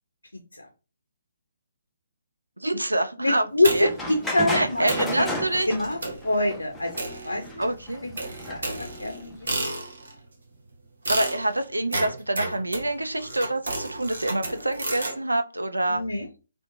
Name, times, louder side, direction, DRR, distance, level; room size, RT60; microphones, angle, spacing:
voice 1, 2.6-3.9 4.5-5.7 7.6-8.0 11.1-16.0, right 1 dB, 90° right, 9 dB, 0.4 m, -26 dB
voice 2, 3.2-4.9 5.1-5.3 5.7-6.9 7.2-7.6 8.0-8.1 8.5-9.7 15.9-16.3, left 2 dB, 90° left, 4 dB, 0.5 m, -25 dB
sound 1, 3.6-4.1 4.5-4.6 4.9-5.2 6.0-6.3 7.0-7.7 8.2-10.2 11.1-15.2, right 2 dB, 70° right, 0.9 m, -32 dB
sound 2, 3.9-9.4, equal, 5° left, 0.5 m, -34 dB
2.9 x 2.1 x 2.5 m, 0.32 s
figure-of-eight pair, 140°, 0 cm